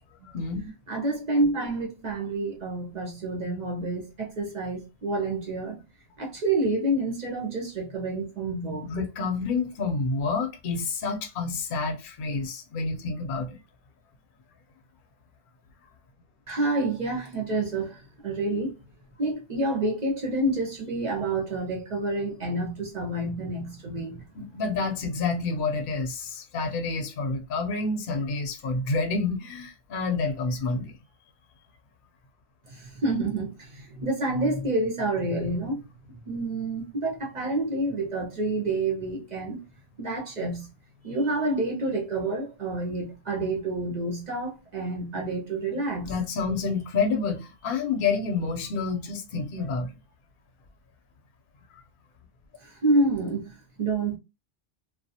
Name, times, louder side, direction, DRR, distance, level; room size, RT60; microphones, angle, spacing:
voice 1, 0.2-0.7 8.9-13.6 24.4-30.9 46.0-49.9, left 4 dB, 55° left, 0.6 m, -28 dB
voice 2, 0.9-5.8 6.2-8.9 16.5-18.7 19.2-24.2 32.7-35.8 36.3-39.6 40.0-40.7 41.0-46.1 52.6-54.2, right 2 dB, 50° right, 0.5 m, -28 dB
2.2 x 2.0 x 2.7 m
omnidirectional pair, 1.3 m